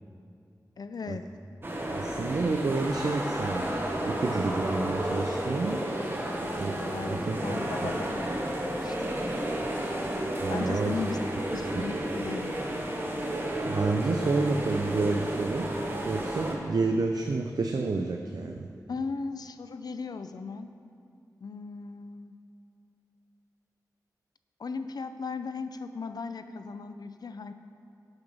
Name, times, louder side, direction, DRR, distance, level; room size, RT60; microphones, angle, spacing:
voice 1, 0.8-1.2 6.8-9.4 10.5-11.2 11.5-12.5 18.9-20.7 21.4-22.4 24.6-27.5, left 4 dB, 75° left, 10 dB, 0.4 m, -37 dB
sound 1, 1.6-16.5, right 1 dB, 30° right, 1.0 m, -32 dB
voice 2, 1.9-3.7 4.0-5.8 6.6-6.8 7.1-7.6 10.4-10.9 11.8-11.9 13.7-15.7 16.0-18.7, right 3 dB, 70° right, 3 dB, 0.5 m, -29 dB
7.8 x 6.0 x 5.4 m, 2.4 s
wide cardioid pair, 90°, 7 cm